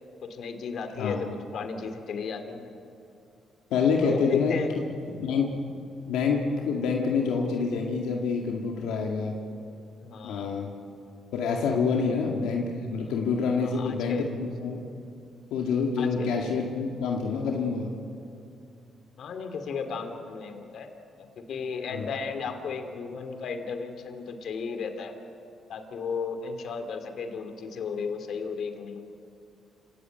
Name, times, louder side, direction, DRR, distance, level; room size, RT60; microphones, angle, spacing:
voice 1, 0.3-2.7 4.0-4.8 10.0-10.5 11.9-12.1 13.6-14.3 16.0-16.3 19.2-20.9 21.2-25.1 25.7-29.0, left 5 dB, 65° left, 7 dB, 2.6 m, -34 dB
voice 2, 3.7-4.5 5.2-5.6 6.1-9.4 10.2-10.7 11.3-14.8 15.5-17.9 21.9-22.1, left 5 dB, 90° left, 0 dB, 2.1 m, -27 dB
28.0 x 17.0 x 9.1 m, 2.6 s
cardioid pair, 90°, 0 cm